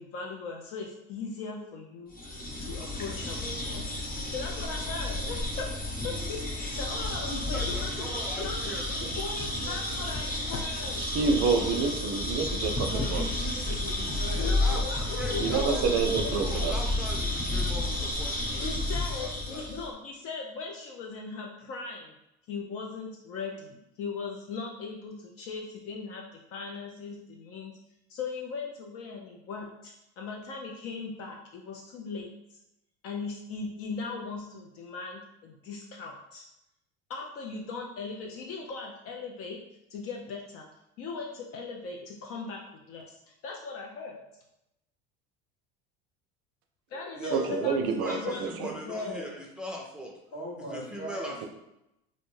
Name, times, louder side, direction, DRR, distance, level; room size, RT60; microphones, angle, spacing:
voice 1, 0.0-2.3 2.6-3.9 4.3-5.8 6.0-7.9 8.4-8.8 9.2-11.0 14.3-15.9 16.2-16.8 18.5-22.1 22.5-27.7 28.1-32.3 33.0-36.5 37.1-39.6 39.9-40.7 41.0-42.6 42.9-44.2 46.9-49.3, left 4 dB, 50° left, 1 dB, 0.4 m, -39 dB
sound 1, 2.1-19.9, left 2 dB, 30° left, 1.0 m, -31 dB
voice 2, 7.3-9.0 14.4-18.7 19.2-19.7 47.1-50.1 50.7-51.4, equal, 5° right, -2 dB, 0.5 m, -40 dB
voice 3, 11.0-13.5 15.4-16.8 47.3-48.8, right 5 dB, 55° right, 5 dB, 0.5 m, -28 dB
voice 4, 12.8-14.5 50.3-51.3, right 1 dB, 85° left, -5 dB, 1.4 m, -39 dB
2.6 x 2.1 x 3.1 m, 0.87 s
supercardioid pair, 95°, 29 cm